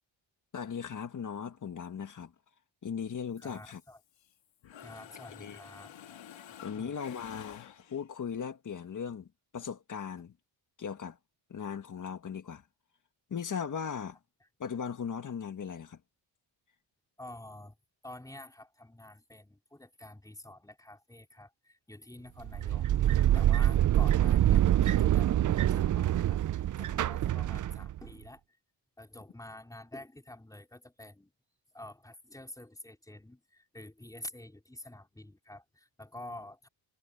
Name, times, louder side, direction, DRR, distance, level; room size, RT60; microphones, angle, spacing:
voice 1, 0.5-2.3 2.8-3.8 5.4-5.6 6.6-9.3 9.5-10.3 10.8-11.2 11.5-12.6 13.3-14.2 14.6-16.0, left 7 dB, 40° left, 1.7 m, -38 dB
Mechanisms, 3.4-4.3 4.6-8.2, left 10 dB, 75° left, 2.0 m, -50 dB
voice 2, 3.4-4.0 4.8-5.9 6.5-7.0 14.4-14.5 17.2-17.8 18.0-22.9 23.3-28.4 29.0-31.3 31.7-36.7, left 1 dB, 10° left, 4.3 m, -49 dB
sound 1, 22.4-28.1, right 12 dB, 45° right, 0.4 m, -25 dB
wide cardioid pair, 155°, 45 cm